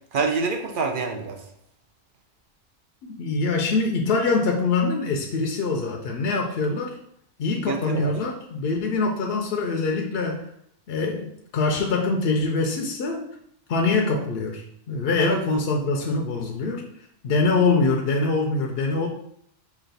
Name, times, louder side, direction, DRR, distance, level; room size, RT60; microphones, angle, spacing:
voice 1, 0.1-1.4 7.5-8.1 15.2-15.6, right 4 dB, 55° right, 4 dB, 0.7 m, -27 dB
voice 2, 3.0-6.9 7.4-10.5 10.9-13.2 13.7-16.8 17.2-19.1, left 3 dB, 60° left, 2 dB, 0.7 m, -24 dB
5.1 x 2.4 x 4.0 m, 0.71 s
omnidirectional pair, 1.2 m